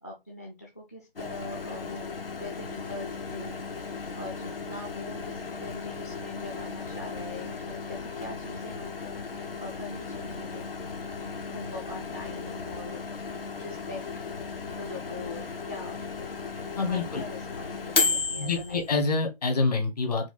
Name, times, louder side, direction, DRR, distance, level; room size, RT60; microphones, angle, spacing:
voice 1, 0.0-3.6 4.1-10.7 11.2-13.0 13.4-14.0 14.8-16.3 16.7-18.9, left 2 dB, 15° left, 0.4 m, -42 dB
Microwave oven, 1.2-18.9, left 4 dB, 70° left, 1.0 m, -35 dB
voice 2, 16.8-17.2 18.4-20.3, left 4 dB, 40° left, 1.2 m, -27 dB
4.6 x 2.3 x 4.1 m
figure-of-eight pair, 150°, 30 cm